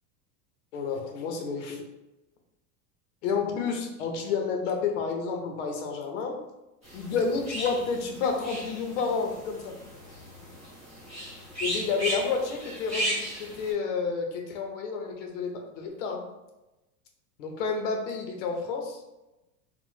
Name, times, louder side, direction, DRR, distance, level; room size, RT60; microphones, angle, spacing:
voice 1, 0.7-1.8 3.2-6.4 6.9-9.8 11.6-16.3 17.4-19.0, left 5 dB, 50° left, 3 dB, 0.5 m, -30 dB
sound 1, 6.8-13.7, equal, 15° right, 0.7 m, -36 dB
2.9 x 2.0 x 3.0 m, 0.97 s
supercardioid pair, 175°, 49 cm